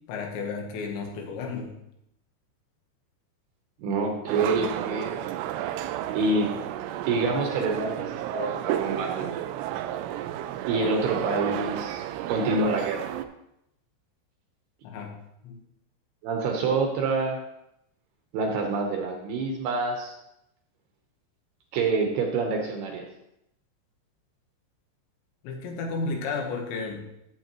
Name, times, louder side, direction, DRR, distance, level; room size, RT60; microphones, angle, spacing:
voice 1, 0.1-1.7 14.8-15.1 15.4-15.6 25.4-27.0, left 4 dB, 75° left, 2 dB, 3.4 m, -32 dB
voice 2, 3.8-5.1 6.1-6.6 7.0-9.3 10.6-13.1 16.2-17.4 18.3-20.1 21.7-23.0, right 3 dB, 70° right, 2 dB, 2.7 m, -27 dB
sound 1, 4.3-13.2, right 12 dB, 90° right, 2.4 m, -32 dB
12.0 x 8.5 x 3.0 m, 0.81 s
omnidirectional pair, 5.3 m